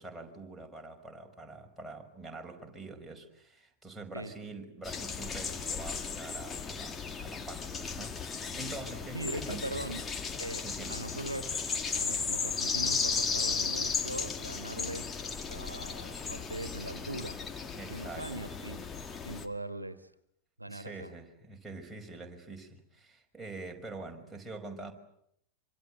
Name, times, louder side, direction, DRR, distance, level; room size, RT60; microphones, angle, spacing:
voice 1, 0.0-3.2 3.8-7.0 7.2-8.2 8.5-9.7 10.6-11.0 17.7-18.4 20.7-22.7 23.3-24.9, right 2 dB, 5° right, 0 dB, 5.4 m, -44 dB
sound 1, 4.8-19.5, left 5 dB, 20° left, 1.9 m, -35 dB
voice 2, 9.1-10.1 10.4-10.6 10.9-11.4 11.9-15.1 15.5-17.4 17.9-18.9 19.2-20.1 20.6-21.1, right 1 dB, 85° right, 11 dB, 1.4 m, -40 dB
26.0 x 25.5 x 7.9 m, 0.72 s
figure-of-eight pair, 90°, 0 cm